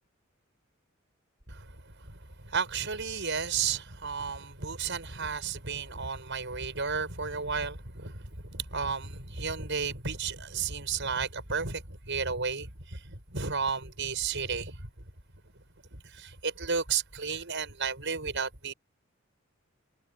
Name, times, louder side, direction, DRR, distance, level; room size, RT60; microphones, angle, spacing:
voice 1, 2.4-14.8 15.9-18.7, right 5 dB, 60° right, 7.2 m, -33 dB
head